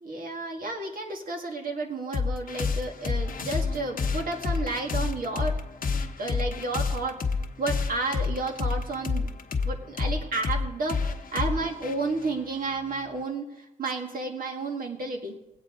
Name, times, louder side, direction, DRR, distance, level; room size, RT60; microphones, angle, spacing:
voice 1, 0.0-5.6 6.2-7.2 7.6-9.3 9.6-11.0 11.3-15.4, right 3 dB, 75° right, 2 dB, 2.0 m, -31 dB
sound 1, 2.1-13.2, left 4 dB, 75° left, 0.9 m, -30 dB
20.0 x 8.5 x 3.8 m, 0.91 s
wide cardioid pair, 150°, 15 cm